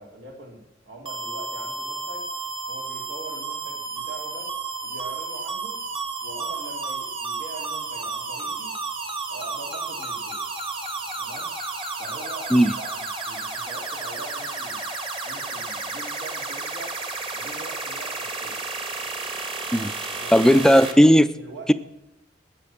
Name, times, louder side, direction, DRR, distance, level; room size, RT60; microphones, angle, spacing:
voice 1, 0.0-2.3 2.7-4.5 4.8-5.8 6.2-8.8 9.3-10.4 11.2-11.5 12.0-14.9 15.2-17.0 17.3-18.6 20.1-20.7 21.4-21.7, right 2 dB, 80° right, -1 dB, 3.8 m, -42 dB
sound 1, 1.1-20.9, right 3 dB, 30° right, 1.6 m, -32 dB
voice 2, 20.3-21.3, equal, 5° left, 12 dB, 0.5 m, -15 dB
20.0 x 6.8 x 7.4 m, 0.87 s
head